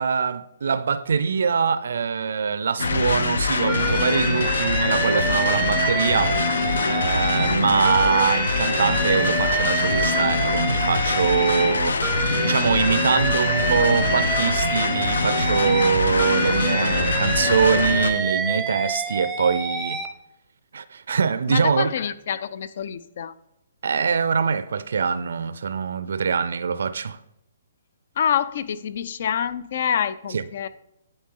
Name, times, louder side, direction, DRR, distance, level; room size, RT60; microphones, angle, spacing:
voice 1, 0.0-6.4 6.8-12.0 12.3-20.0 20.7-21.9 23.8-27.2 30.3-30.4, right 6 dB, 75° right, 0.4 m, -23 dB
sound 1, 2.8-18.1, left 3 dB, 85° left, 0.8 m, -24 dB
Alarm, 3.7-7.6 7.8-11.7 12.0-15.9 16.2-20.1, right 4 dB, 5° right, 0.6 m, -28 dB
voice 2, 21.5-23.3 28.2-30.7, left 8 dB, 55° left, 0.5 m, -26 dB
10.5 x 4.2 x 3.8 m
hypercardioid pair, 155°, 0 cm